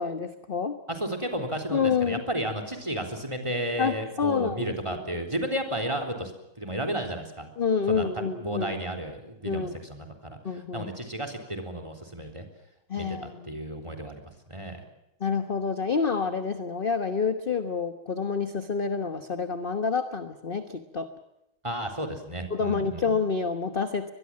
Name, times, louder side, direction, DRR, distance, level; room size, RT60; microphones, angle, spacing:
voice 1, 0.0-0.8 1.7-2.2 3.8-5.2 7.6-8.7 9.4-9.8 10.4-10.9 12.9-13.5 15.2-21.1 22.5-24.1, left 5 dB, 30° left, 9 dB, 1.2 m, -28 dB
voice 2, 0.9-6.3 6.6-7.5 7.9-12.4 13.0-14.2 14.5-14.8 21.6-23.1, right 1 dB, 15° right, 7 dB, 3.7 m, -33 dB
24.0 x 21.5 x 7.6 m, 0.87 s
omnidirectional pair, 2.3 m